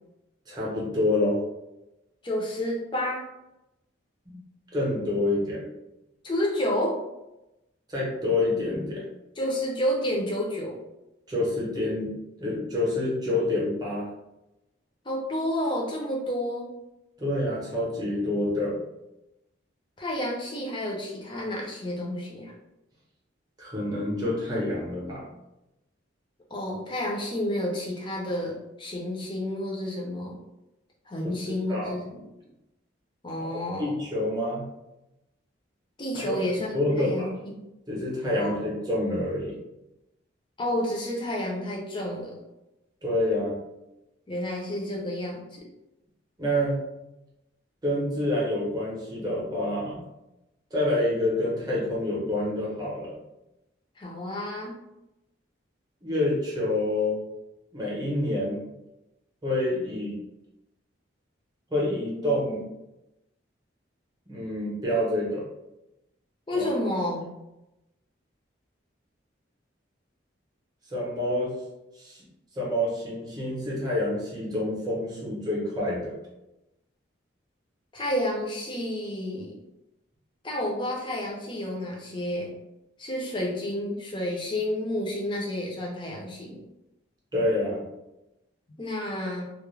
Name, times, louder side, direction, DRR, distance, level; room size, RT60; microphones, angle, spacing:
voice 1, 0.5-1.4 4.3-4.4 4.7-5.6 7.9-9.1 11.3-12.1 12.4-14.1 17.2-18.8 23.6-25.2 31.2-32.0 33.4-34.7 36.1-36.4 36.7-37.3 37.9-39.6 43.0-43.6 46.4-46.8 47.8-50.1 50.7-53.2 56.0-57.2 57.7-58.6 59.4-60.2 61.7-62.6 64.3-65.4 66.5-66.7 70.9-71.6 71.9-72.2 72.5-76.2 87.3-87.8, left 1 dB, 20° right, -5 dB, 0.7 m, -27 dB
voice 2, 2.2-3.3 6.2-7.0 9.4-10.8 15.0-16.7 20.0-22.5 26.5-30.4 31.1-32.2 33.2-33.9 36.0-37.7 38.3-38.7 40.6-42.4 44.3-45.7 54.0-54.8 66.5-67.3 77.9-79.6 80.4-82.5 83.0-86.7 88.8-89.5, left 1 dB, 25° left, -2 dB, 0.5 m, -30 dB
2.3 x 2.0 x 3.1 m, 0.94 s
head